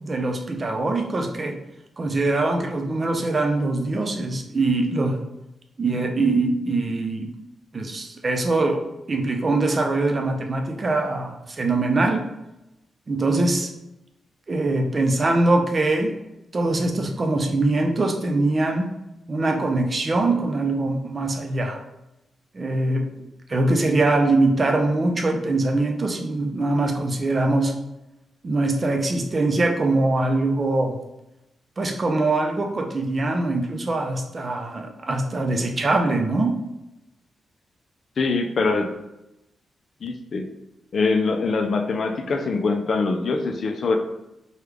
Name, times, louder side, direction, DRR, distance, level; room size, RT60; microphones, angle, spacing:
voice 1, 0.0-1.6 2.0-5.2 5.8-7.3 7.7-12.3 13.1-13.7 14.5-16.2 16.5-18.9 19.3-21.8 22.5-23.1 23.5-27.7 28.4-31.0 31.8-36.6, right 2 dB, 40° right, 4 dB, 0.5 m, -23 dB
voice 2, 38.2-38.9 40.0-40.5 40.9-44.0, left 3 dB, 60° left, 5 dB, 0.4 m, -23 dB
3.2 x 2.3 x 3.4 m, 0.90 s
cardioid pair, 60°, 0 cm